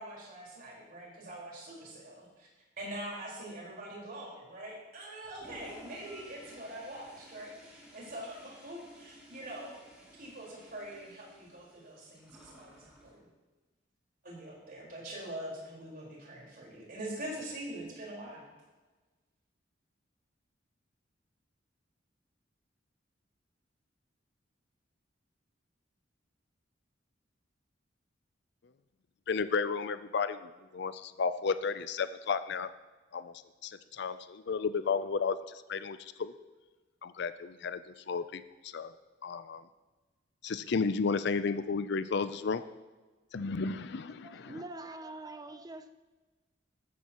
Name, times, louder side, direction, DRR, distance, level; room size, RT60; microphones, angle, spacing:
voice 1, 0.0-2.5 2.8-9.8 10.2-13.3 14.2-18.5, right 1 dB, 55° right, 4.7 m, -44 dB
Toilet flush, 5.2-13.1, equal, 5° right, 3.9 m, -55 dB
voice 2, 29.3-32.7 33.1-33.3 33.6-36.3 37.0-37.8 38.1-38.9 39.2-39.6 40.4-42.6 43.3-44.6, left 5 dB, 65° left, 0.5 m, -33 dB
voice 3, 44.2-45.9, right 2 dB, 20° right, 0.7 m, -44 dB
14.0 x 14.0 x 3.0 m
head